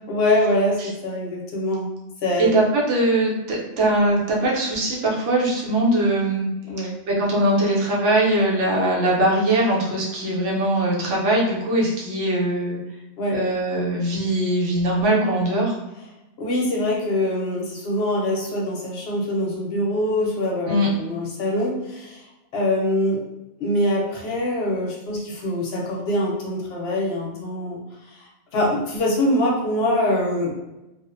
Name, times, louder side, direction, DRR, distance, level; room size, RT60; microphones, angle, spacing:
voice 1, 0.1-1.9 2.2-2.5 6.6-6.9 13.2-13.4 16.4-22.2 22.5-23.2 23.6-27.8 28.1-30.5, left 1 dB, 65° left, -2 dB, 0.8 m, -24 dB
voice 2, 2.4-6.5 7.1-12.8 13.3-15.7 20.7-20.9, right 1 dB, 80° right, -4 dB, 1.0 m, -21 dB
2.4 x 2.1 x 2.5 m, 0.97 s
omnidirectional pair, 1.2 m